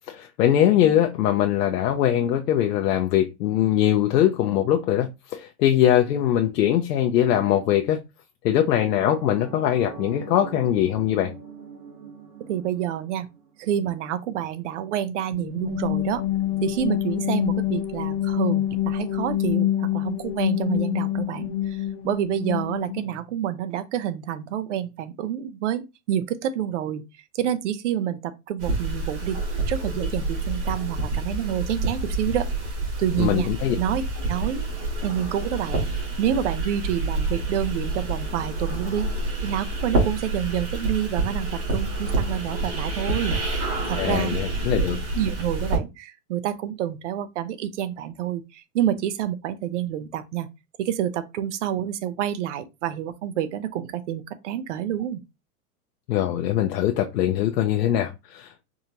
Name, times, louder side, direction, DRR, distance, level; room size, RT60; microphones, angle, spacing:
voice 1, 0.1-8.0 8.4-11.3 33.2-33.7 43.9-45.0 56.1-58.6, left 11 dB, 85° left, 0.8 m, -22 dB
sound 1, 9.0-13.8, right 6 dB, 70° right, 1.3 m, -42 dB
voice 2, 12.5-13.3 13.6-16.2 16.6-27.1 27.3-29.4 29.7-32.5 33.0-33.5 33.8-34.0 34.3-34.6 35.0-39.1 39.4-44.4 45.1-50.5 50.8-55.2, right 10 dB, 50° right, 0.6 m, -28 dB
sound 2, 15.3-23.1, left 12 dB, 40° left, 0.8 m, -26 dB
sound 3, 28.6-45.8, right 2 dB, 35° right, 2.4 m, -28 dB
4.9 x 2.6 x 2.8 m
supercardioid pair, 165°, 46 cm